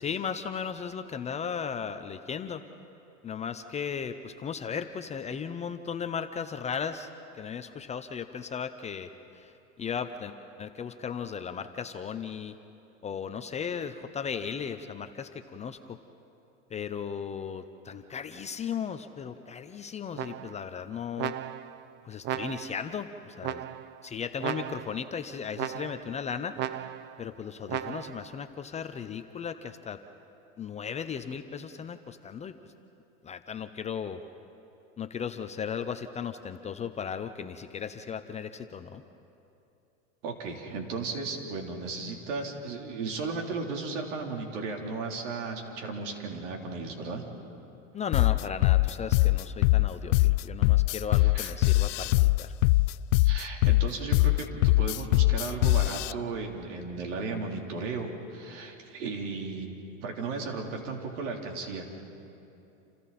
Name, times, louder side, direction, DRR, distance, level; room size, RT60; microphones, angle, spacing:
voice 1, 0.0-2.6 3.2-7.1 7.4-9.1 9.4-9.5 9.8-10.3 10.6-12.6 13.0-16.0 16.7-21.3 22.0-23.6 24.0-26.6 27.2-30.0 30.6-32.6 33.2-34.2 35.0-39.0 47.9-52.5, left 7 dB, 20° left, 9 dB, 0.6 m, -36 dB
sound 1, 20.2-20.7 21.2-21.8 22.2-22.9 23.4-24.0 24.4-25.1 25.6-26.2 26.6-27.2 27.7-28.3, right 11 dB, 30° right, 0.5 m, -36 dB
voice 2, 40.2-47.2 51.2-51.5 53.2-59.7 60.0-62.0, right 4 dB, 70° right, 1 dB, 3.7 m, -35 dB
sound 2, 48.1-56.1, left 20 dB, 70° left, 0.5 m, -22 dB
28.5 x 28.5 x 4.3 m, 2.8 s
supercardioid pair, 130°, 38 cm